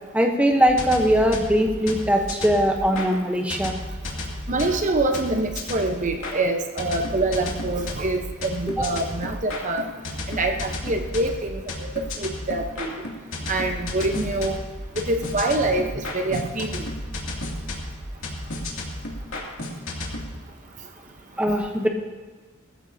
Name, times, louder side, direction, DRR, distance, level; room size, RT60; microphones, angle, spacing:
voice 1, 0.1-3.7 8.8-8.9 21.4-21.9, equal, 5° right, 2 dB, 1.0 m, -20 dB
sound 1, 0.7-3.1 3.5-6.3 6.8-20.2, left 1 dB, 75° left, 2.7 m, -33 dB
voice 2, 4.5-9.9 10.3-11.9 12.2-13.0 13.5-14.6 15.0-16.9, right 2 dB, 40° right, 5 dB, 1.0 m, -25 dB
20.5 x 14.5 x 2.8 m, 1.3 s
head